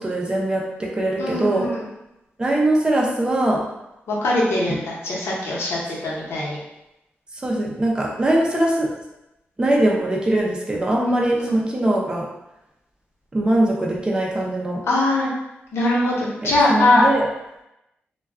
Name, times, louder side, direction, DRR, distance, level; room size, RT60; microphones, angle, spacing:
voice 1, 0.0-1.7 2.4-3.6 4.7-4.8 7.4-8.9 9.6-12.3 13.3-14.8 16.4-17.2, right 1 dB, 20° right, -2 dB, 0.5 m, -21 dB
voice 2, 1.2-1.9 4.1-6.6 11.4-11.6 14.8-15.3 15.7-17.1, left 2 dB, 85° left, -5 dB, 0.8 m, -21 dB
2.2 x 2.2 x 3.4 m, 0.91 s
wide cardioid pair, 140°, 4 cm